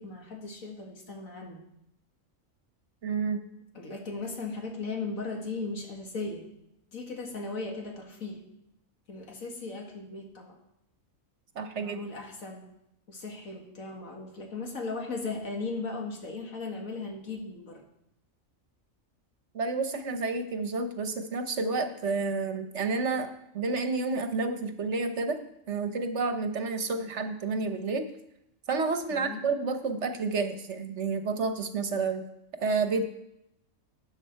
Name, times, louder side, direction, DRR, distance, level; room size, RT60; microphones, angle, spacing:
voice 1, 0.0-1.6 3.7-6.5 6.9-8.4 9.1-10.6 11.8-12.7 13.1-17.8 29.1-29.4, left 3 dB, 85° left, 1 dB, 2.2 m, -37 dB
voice 2, 3.0-3.4 11.5-12.0 19.5-25.4 25.7-28.1 28.7-32.2 32.6-33.0, right 4 dB, 60° right, 8 dB, 1.3 m, -30 dB
13.0 x 8.4 x 4.5 m, 0.82 s
omnidirectional pair, 1.4 m